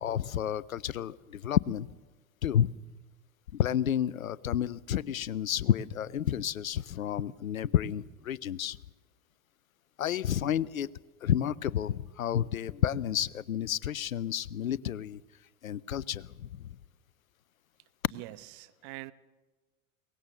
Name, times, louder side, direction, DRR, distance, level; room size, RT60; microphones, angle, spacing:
voice 1, 0.0-1.9 2.4-2.7 3.5-8.8 10.0-10.9 11.2-15.2 15.6-16.8, left 10 dB, 90° left, 22 dB, 0.6 m, -30 dB
voice 2, 18.1-19.1, right 19 dB, 55° right, 14 dB, 1.0 m, -44 dB
22.5 x 19.0 x 6.7 m, 1.2 s
hypercardioid pair, 85°, 40 cm